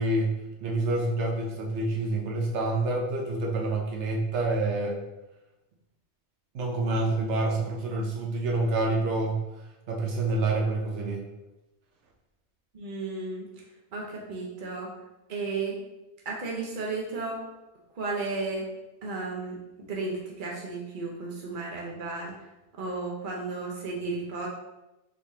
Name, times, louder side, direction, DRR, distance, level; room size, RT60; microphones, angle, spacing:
voice 1, 0.0-5.0 6.5-9.5 9.9-11.2, right 2 dB, 80° right, -1 dB, 1.0 m, -27 dB
voice 2, 12.7-13.7 13.9-14.9 15.3-15.8 16.2-17.4 17.9-18.7 19.0-19.6 19.9-22.5 22.7-24.5, right 3 dB, 50° right, -2 dB, 1.0 m, -34 dB
4.9 x 3.5 x 2.8 m, 0.99 s
omnidirectional pair, 1.2 m